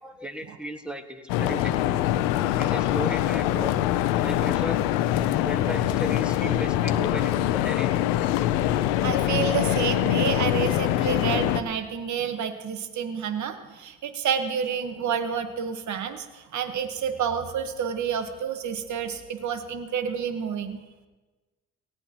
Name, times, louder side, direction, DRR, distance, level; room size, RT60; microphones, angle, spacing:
voice 1, 0.0-2.0 2.6-3.8 4.2-4.8 5.4-8.1, right 1 dB, 5° right, 6 dB, 1.7 m, -36 dB
sound 1, 1.3-11.6, left 13 dB, 85° left, 0.7 m, -24 dB
voice 2, 9.0-20.8, right 7 dB, 60° right, 8 dB, 1.3 m, -29 dB
18.5 x 16.0 x 3.0 m, 1.2 s
hypercardioid pair, 55°, 34 cm